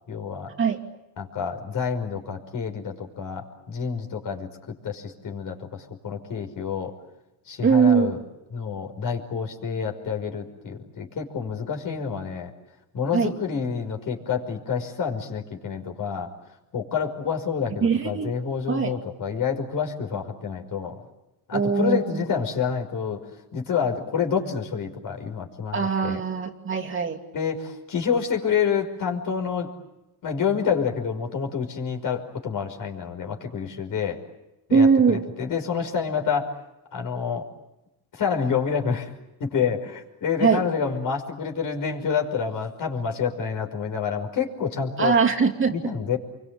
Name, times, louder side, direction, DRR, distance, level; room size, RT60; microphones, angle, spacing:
voice 1, 0.1-0.5 1.2-6.9 7.5-8.2 8.5-12.5 12.9-16.3 16.7-21.0 21.5-23.3 23.5-26.2 27.3-29.7 30.2-34.2 34.7-36.5 36.9-37.4 38.1-39.1 39.4-45.1 45.7-46.2, left 6 dB, 45° left, 3 dB, 5.7 m, -28 dB
voice 2, 7.6-8.1 13.1-13.3 17.8-18.3 18.7-19.0 21.5-22.2 25.7-27.2 34.7-35.2 40.4-40.6 45.0-45.9, right 6 dB, 30° right, 1 dB, 2.7 m, -21 dB
27.5 x 24.0 x 9.0 m, 0.96 s
cardioid pair, 105°, 44 cm